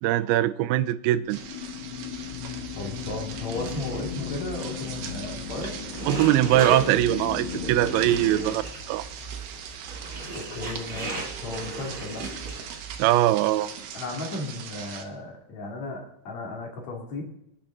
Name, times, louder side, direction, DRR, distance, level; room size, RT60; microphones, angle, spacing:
voice 1, 0.0-1.4 6.1-8.6 8.9-9.0 13.0-13.7, right 14 dB, 80° right, 11 dB, 2.3 m, -22 dB
sound 1, 1.1-8.4, left 8 dB, 70° left, 4.4 m, -36 dB
sound 2, 1.3-15.1, right 7 dB, 65° right, 2.4 m, -41 dB
voice 2, 2.7-5.7 8.1-8.6 10.3-12.3 13.9-17.2, left 2 dB, 45° left, 1 dB, 3.4 m, -35 dB
sound 3, 3.3-13.0, right 2 dB, 30° right, 3.6 m, -37 dB
26.0 x 8.7 x 3.9 m, 0.77 s
omnidirectional pair, 5.0 m